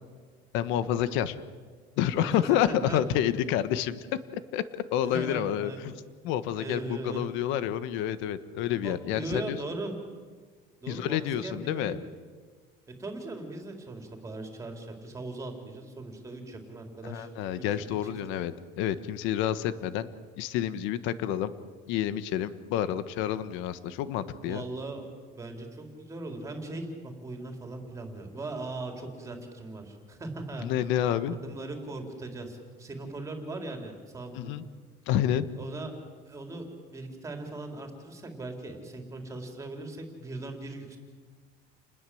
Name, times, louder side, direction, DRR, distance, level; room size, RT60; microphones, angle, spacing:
voice 1, 0.5-1.4 2.0-4.1 4.3-4.6 4.9-5.9 6.2-9.6 10.9-12.0 17.0-20.1 20.4-21.5 21.9-24.6 30.6-31.4 34.3-34.6 35.1-35.5, left 11 dB, 75° left, 13 dB, 1.4 m, -29 dB
voice 2, 2.1-3.0 5.1-5.9 6.6-7.3 8.8-10.0 10.8-11.9 13.0-17.3 17.7-18.2 24.4-30.7 31.3-34.5 35.6-35.9 36.3-36.6 36.9-41.0, right 2 dB, 15° right, 4 dB, 4.1 m, -39 dB
30.0 x 20.5 x 7.9 m, 1.5 s
cardioid pair, 155°, 20 cm